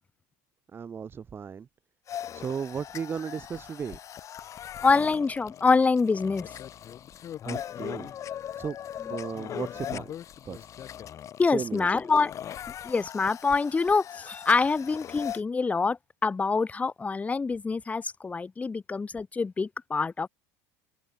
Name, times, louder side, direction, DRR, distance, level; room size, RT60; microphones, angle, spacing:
voice 1, 0.7-1.7 2.3-4.0 7.4-8.1 8.6-8.8 9.1-10.1 10.4-10.7 11.5-11.9, right 7 dB, 25° right, 3.2 m, -35 dB
sound 1, 2.1-15.4, left 10 dB, 40° left, 3.0 m, -40 dB
voice 2, 4.8-6.5 9.1-9.2 11.4-12.3 12.8-20.3, left 4 dB, 15° left, 1.8 m, -25 dB
open air
supercardioid pair, 120°, 8 cm